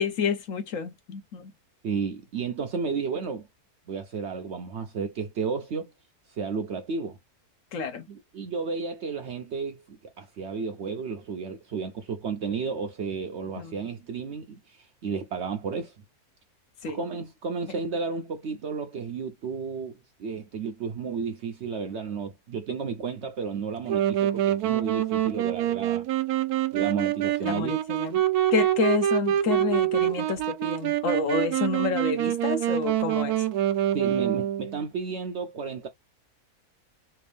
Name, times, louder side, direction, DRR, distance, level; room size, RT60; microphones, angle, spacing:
voice 1, 0.0-1.5 7.7-8.1 13.6-13.7 16.8-17.0 27.4-28.2 28.5-33.4, left 5 dB, 65° left, 1.0 m, -29 dB
voice 2, 1.8-3.5 3.9-5.9 6.3-7.2 8.1-15.9 16.9-26.1 26.7-27.8 33.9-35.9, right 5 dB, 60° right, 0.7 m, -32 dB
Wind instrument woodwind instrument, 23.9-34.8, right 12 dB, 80° right, 1.1 m, -26 dB
3.4 x 2.5 x 3.3 m
omnidirectional pair, 1.6 m